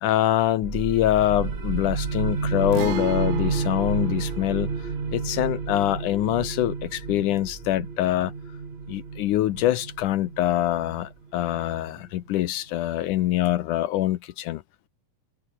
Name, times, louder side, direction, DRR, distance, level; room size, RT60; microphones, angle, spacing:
voice 1, 0.0-8.3 8.9-14.6, left 14 dB, 70° left, 2.3 m, -24 dB
sound 1, 0.6-12.0, right 4 dB, 55° right, 0.6 m, -31 dB
Guitar, 2.7-10.3 10.6-10.7 12.7-12.9, right 15 dB, 75° right, 1.5 m, -40 dB
omnidirectional pair, 4.0 m